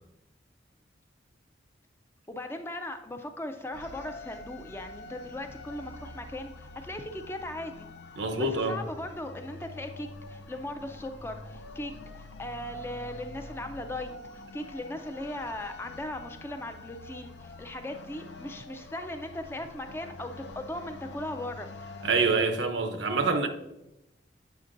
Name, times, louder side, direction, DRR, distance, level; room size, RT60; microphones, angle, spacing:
voice 1, 2.3-7.9 8.4-11.9 12.2-14.1 14.5-21.7, left 1 dB, 15° left, 0.4 m, -38 dB
sound 1, 3.7-22.5, left 2 dB, 75° left, 0.5 m, -46 dB
voice 2, 8.2-8.8 22.0-23.5, right 3 dB, 90° right, 0.7 m, -26 dB
8.0 x 5.2 x 2.5 m
head